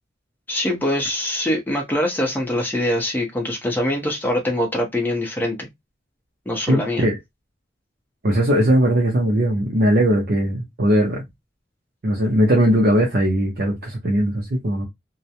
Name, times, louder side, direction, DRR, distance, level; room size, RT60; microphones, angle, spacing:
voice 1, 0.5-5.7 6.5-7.1, left 1 dB, 10° left, 0.6 m, -23 dB
voice 2, 6.7-7.1 8.2-11.2 12.0-14.9, equal, 55° right, 0.6 m, -19 dB
2.3 x 2.0 x 2.7 m
head